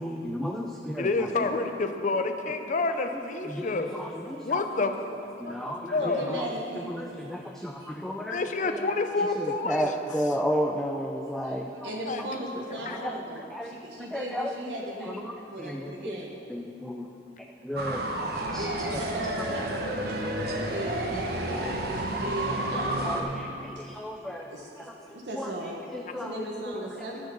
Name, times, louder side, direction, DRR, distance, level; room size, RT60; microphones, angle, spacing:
voice 1, 0.0-1.3 3.5-4.6 5.4-6.5 6.9-8.4 8.7-8.8 9.4-11.9 13.5-13.7 14.1-14.5 15.0-15.1 15.6-16.2 16.5-16.6 17.6-18.0 18.5-18.7 18.9-19.0 23.0-24.5 25.3-25.5 25.9-26.3 26.7-26.8, equal, 5° left, 1 dB, 0.4 m, -32 dB
voice 2, 1.0-3.9 4.4-4.9 5.5-6.4 8.3-9.9 12.1-12.2 12.7-13.0, left 3 dB, 45° left, 7 dB, 0.6 m, -28 dB
voice 3, 5.4-6.9 7.2-8.0 11.2-16.3 18.3-21.6 21.9-24.0 24.3-27.2, right 1 dB, 85° right, -1 dB, 1.1 m, -38 dB
sound 1, 17.8-23.2, right 1 dB, 60° right, 1.1 m, -30 dB
10.5 x 6.4 x 6.8 m, 2.8 s
head